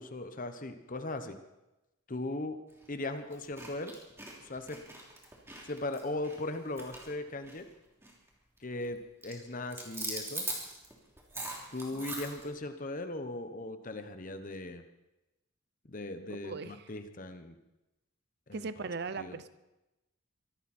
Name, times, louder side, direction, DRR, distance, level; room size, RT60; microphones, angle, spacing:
voice 1, 0.0-1.4 2.1-2.6 2.9-3.9 4.4-4.8 5.6-7.7 8.6-10.5 11.7-14.8 15.9-17.6 18.5-18.9 19.2-19.4, left 2 dB, 40° left, 9 dB, 1.1 m, -38 dB
sound 1, 2.7-2.9 3.3-7.7 8.0-8.3 8.6-8.9 9.2-12.5, right 2 dB, 15° right, 3.1 m, -41 dB
voice 2, 16.3-16.9 18.5-19.5, right 4 dB, 50° right, 13 dB, 0.6 m, -39 dB
24.0 x 13.5 x 4.3 m, 0.97 s
head